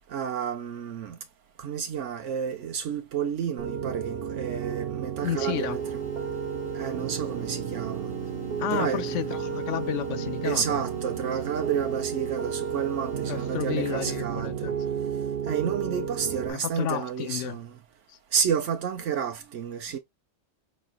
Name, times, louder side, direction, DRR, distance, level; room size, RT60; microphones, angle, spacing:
voice 1, 0.1-1.2 1.6-6.0 6.7-8.1 8.7-9.2 10.4-14.7 15.5-17.8 18.3-20.0, right 7 dB, 80° right, 1.1 m, -30 dB
Piano, 3.6-16.5, right 8 dB, 60° right, 0.8 m, -32 dB
voice 2, 5.2-5.8 8.6-10.8 13.3-14.7 16.5-17.6 18.1-18.2, left 11 dB, 85° left, 0.9 m, -32 dB
sound 1, 5.2-14.2, left 1 dB, 15° left, 1.6 m, -52 dB
sound 2, 5.8-14.4, left 11 dB, 60° left, 0.7 m, -47 dB
5.1 x 3.1 x 2.3 m
omnidirectional pair, 1.2 m